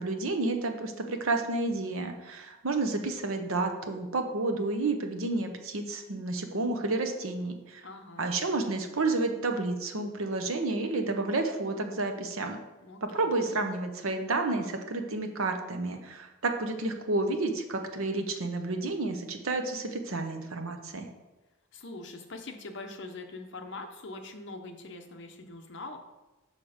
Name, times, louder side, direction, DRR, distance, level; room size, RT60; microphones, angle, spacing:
voice 1, 0.0-7.9 8.2-12.6 13.0-21.1, right 2 dB, 70° right, 5 dB, 0.9 m, -30 dB
voice 2, 7.8-8.3 12.8-13.3 21.7-26.0, left 2 dB, 55° left, 4 dB, 0.8 m, -43 dB
6.4 x 5.8 x 5.0 m, 1.1 s
head